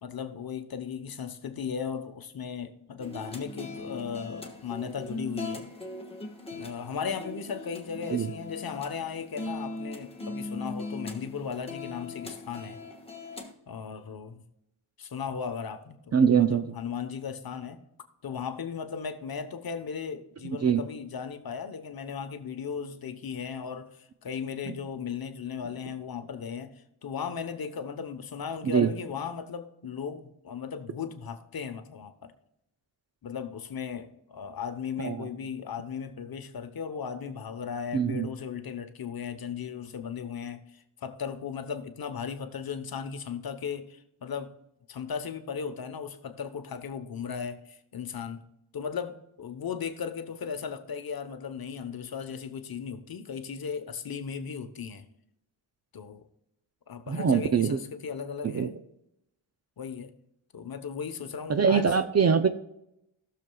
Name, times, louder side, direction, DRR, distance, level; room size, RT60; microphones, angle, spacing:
voice 1, 0.0-5.7 6.5-12.8 13.7-14.4 15.0-17.8 18.2-32.3 33.2-44.5 44.9-48.4 48.7-55.0 55.9-56.3 56.9-58.8 59.8-60.1 60.5-62.0, left 6 dB, 50° left, 1.0 m, -36 dB
sound 1, 3.0-13.5, left 2 dB, 10° left, 1.3 m, -40 dB
voice 2, 16.1-16.6 20.6-20.8 28.6-28.9 35.0-35.3 37.9-38.3 57.1-57.8 58.4-58.7 61.5-62.5, right 6 dB, 35° right, 0.5 m, -23 dB
16.0 x 6.8 x 2.3 m
wide cardioid pair, 140°, 47 cm